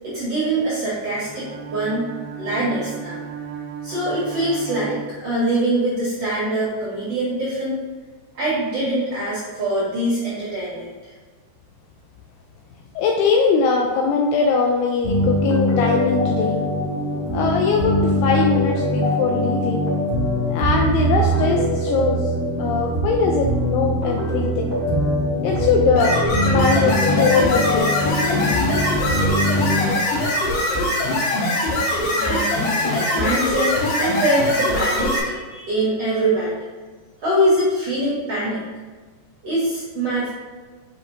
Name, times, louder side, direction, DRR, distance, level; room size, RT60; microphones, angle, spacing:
voice 1, 0.0-2.1 2.4-3.2 3.8-7.8 8.3-11.1 32.1-36.5 37.2-38.6 39.4-40.3, right 1 dB, 60° right, -8 dB, 1.6 m, -23 dB
Bowed string instrument, 1.1-5.7, right 7 dB, 80° right, 2.7 m, -34 dB
voice 2, 13.0-16.6 17.3-19.8 20.5-22.2 22.6-24.7 25.4-28.9, left 5 dB, 85° left, 1 dB, 2.3 m, -21 dB
sound 1, 15.0-29.9, equal, 45° left, 1.5 m, -22 dB
sound 2, 25.9-35.2, left 1 dB, 65° left, 2.3 m, -22 dB
6.9 x 5.6 x 2.6 m, 1.4 s
omnidirectional pair, 5.1 m